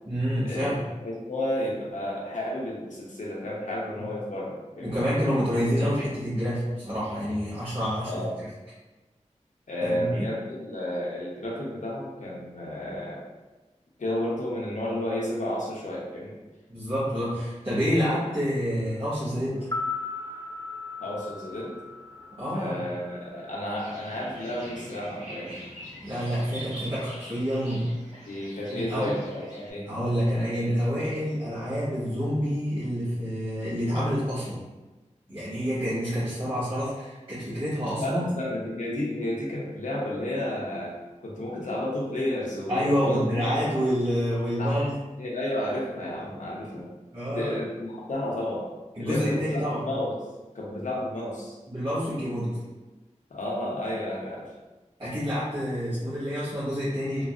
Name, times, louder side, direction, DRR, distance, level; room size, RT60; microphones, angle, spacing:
voice 1, 0.0-0.8 4.8-8.1 9.8-10.3 16.7-19.6 22.4-22.8 26.0-27.9 28.7-29.1 29.8-34.6 35.3-38.3 42.7-45.0 47.1-47.6 48.9-49.8 51.7-52.6 55.0-57.2, equal, 45° right, -13 dB, 1.5 m, -28 dB
voice 2, 1.0-5.0 8.1-8.3 9.7-13.2 14.0-16.4 21.0-21.7 22.4-25.6 28.3-29.9 38.0-43.5 44.6-44.9 45.2-46.9 47.2-48.6 49.0-50.1 50.5-51.6 53.3-54.5, left 1 dB, 85° left, -4 dB, 0.7 m, -32 dB
sound 1, 19.6-23.7 24.0-24.1, left 3 dB, 25° left, 0.4 m, -37 dB
sound 2, 23.8-29.7, equal, 75° right, 1.5 m, -44 dB
3.8 x 2.0 x 2.5 m, 1.2 s
wide cardioid pair, 45°, 12 cm